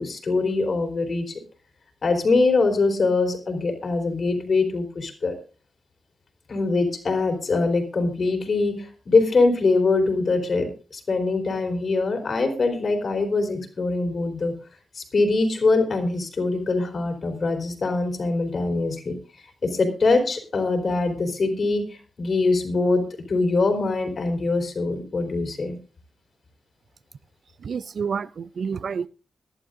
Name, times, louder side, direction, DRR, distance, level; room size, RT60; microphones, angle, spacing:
voice 1, 0.0-1.4 2.0-5.3 6.5-14.5 14.9-19.2 19.6-25.8, left 3 dB, 60° left, 3.5 m, -23 dB
voice 2, 27.6-29.1, right 6 dB, 65° right, 0.5 m, -29 dB
22.0 x 12.0 x 2.6 m
supercardioid pair, 40°, 0 cm